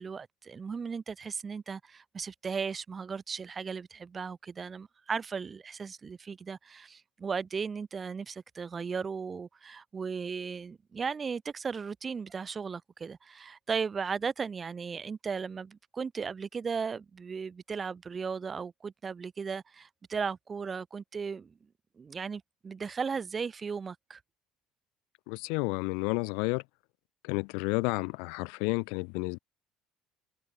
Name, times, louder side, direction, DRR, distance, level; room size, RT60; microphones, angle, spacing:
voice 1, 0.0-21.5 22.0-24.2, right 5 dB, 30° right, 4.2 m, -36 dB
voice 2, 25.3-26.6 27.2-29.4, left 36 dB, 85° left, 2.9 m, -31 dB
cardioid pair, 110°, 0 cm